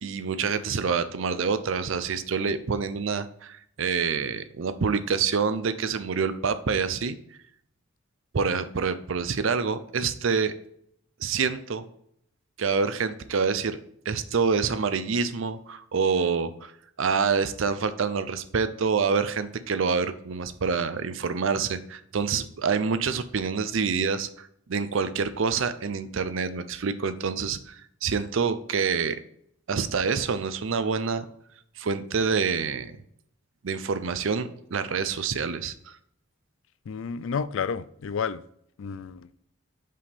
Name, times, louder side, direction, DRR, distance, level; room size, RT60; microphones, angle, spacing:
voice 1, 0.0-7.2 8.3-10.5 11.2-11.8 12.6-13.8 14.1-16.7 17.0-29.2 29.7-31.3 31.8-33.0 33.6-35.9, right 5 dB, 65° right, 0.5 m, -27 dB
voice 2, 36.9-38.4 38.8-39.3, left 6 dB, 65° left, 0.4 m, -31 dB
5.4 x 5.2 x 4.2 m
head